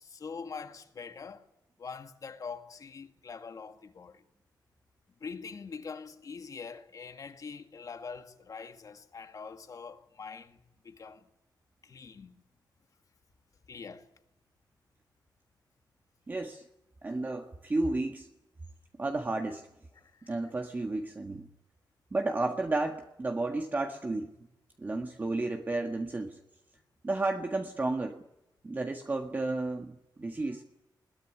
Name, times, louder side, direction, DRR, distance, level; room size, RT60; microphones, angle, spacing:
voice 1, 0.0-1.4 1.8-4.2 5.2-11.2 11.8-12.4 13.7-14.1 20.0-20.3, left 5 dB, 50° left, 2.2 m, -44 dB
voice 2, 16.3-16.6 17.0-18.3 19.0-19.7 20.2-21.5 22.1-24.3 24.8-26.4 27.0-28.2 28.6-30.6, right 2 dB, 25° right, 1.6 m, -32 dB
21.5 x 19.5 x 10.0 m
wide cardioid pair, 140°, 8 cm